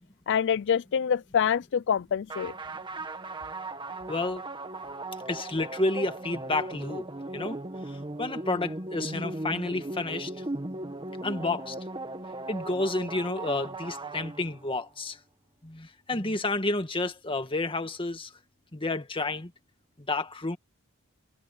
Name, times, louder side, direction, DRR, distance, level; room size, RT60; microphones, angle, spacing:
voice 1, 0.3-2.5, left 7 dB, 55° left, 0.4 m, -26 dB
sound 1, 2.3-14.8, right 2 dB, 25° right, 1.7 m, -38 dB
voice 2, 4.1-4.4 5.3-7.0 7.3-7.6 7.9-10.4 11.2-11.8 12.5-15.2 15.6-18.3 18.7-19.5 20.1-20.6, left 2 dB, 25° left, 2.0 m, -30 dB
head